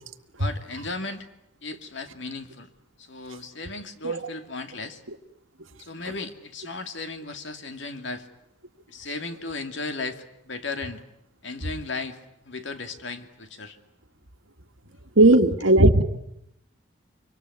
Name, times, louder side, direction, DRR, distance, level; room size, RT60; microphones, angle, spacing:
voice 1, 0.4-1.3 1.6-2.7 3.0-5.0 5.8-8.3 8.9-11.0 11.4-12.2 12.4-13.8 15.3-15.5, left 3 dB, 65° left, 7 dB, 2.5 m, -35 dB
voice 2, 15.2-16.0, right 1 dB, 85° right, 7 dB, 1.9 m, -16 dB
25.0 x 25.0 x 9.6 m, 0.79 s
head